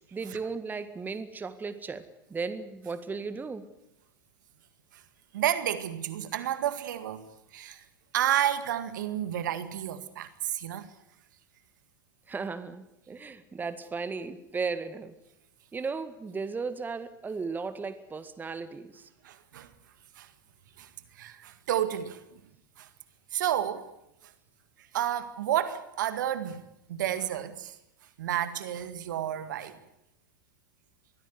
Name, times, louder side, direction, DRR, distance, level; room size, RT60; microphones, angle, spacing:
voice 1, 0.1-2.0 2.3-3.6 12.3-15.2 15.7-19.1, right 4 dB, 15° right, 1.8 m, -35 dB
voice 2, 5.3-7.2 7.5-7.8 8.1-10.9 19.2-19.7 20.2-20.3 20.8-22.2 22.8-22.9 23.3-23.9 24.9-26.6 26.9-27.8 28.2-29.8, right 11 dB, 65° right, 1.9 m, -31 dB
23.0 x 15.5 x 9.8 m
figure-of-eight pair, 90°, 11 cm